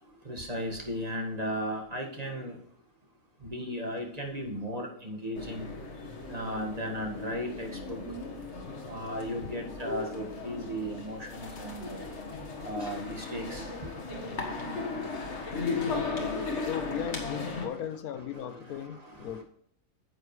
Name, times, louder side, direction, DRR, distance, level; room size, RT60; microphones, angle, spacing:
voice 1, 0.2-2.6 3.4-5.7 6.3-8.0 8.9-12.0 12.6-13.9 17.0-17.1 17.6-17.8 18.2-19.4, equal, 25° right, 1.8 m, -36 dB
sound 1, 5.3-17.7, left 3 dB, 50° left, 1.8 m, -36 dB
voice 2, 16.6-19.4, left 9 dB, 80° left, 1.3 m, -37 dB
10.0 x 8.0 x 3.2 m
omnidirectional pair, 1.6 m